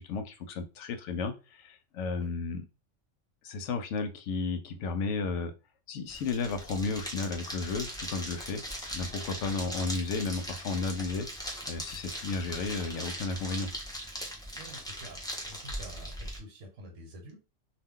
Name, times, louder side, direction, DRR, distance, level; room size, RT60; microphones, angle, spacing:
voice 1, 0.0-2.6 3.4-5.5 5.9-8.6 8.9-11.3 11.6-13.7, left 4 dB, 75° left, 7 dB, 0.9 m, -33 dB
sound 1, 6.1-16.4, equal, 5° left, 0.4 m, -40 dB
voice 2, 14.5-17.4, right 1 dB, 70° right, 1 dB, 1.2 m, -48 dB
2.4 x 2.1 x 3.6 m, 0.29 s
omnidirectional pair, 1.3 m